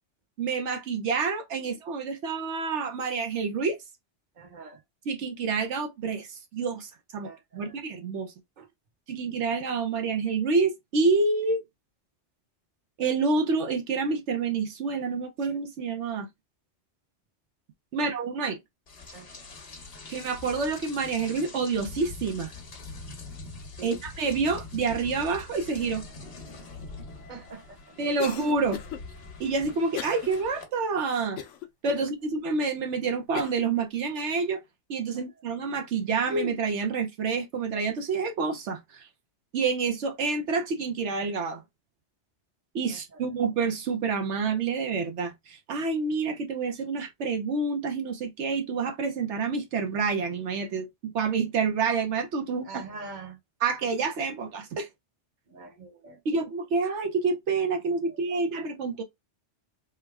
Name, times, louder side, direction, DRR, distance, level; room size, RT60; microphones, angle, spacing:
voice 1, 0.4-3.8 5.1-8.3 9.1-11.6 13.0-16.3 17.9-18.6 20.1-22.5 23.8-26.1 28.0-28.8 29.4-31.4 31.8-34.6 34.9-39.1 39.5-41.6 42.7-52.7 53.6-54.9 56.2-59.0, right 4 dB, 80° right, 1.0 m, -28 dB
voice 2, 4.3-4.8 7.2-7.8 8.6-8.7 17.9-18.1 19.1-19.5 23.8-24.0 27.3-27.8 31.9-32.1 35.1-35.2 42.9-43.3 52.6-53.4 55.5-56.4 58.1-58.5, right 4 dB, 45° right, 1.0 m, -45 dB
Rain, 18.9-30.6, left 3 dB, 60° left, 1.2 m, -43 dB
Cough, 28.2-29.0 29.9-30.3 30.7-30.8 31.4-32.0 32.6-32.7 33.4-33.7, left 9 dB, 90° left, 0.9 m, -36 dB
3.5 x 2.1 x 3.4 m
omnidirectional pair, 1.2 m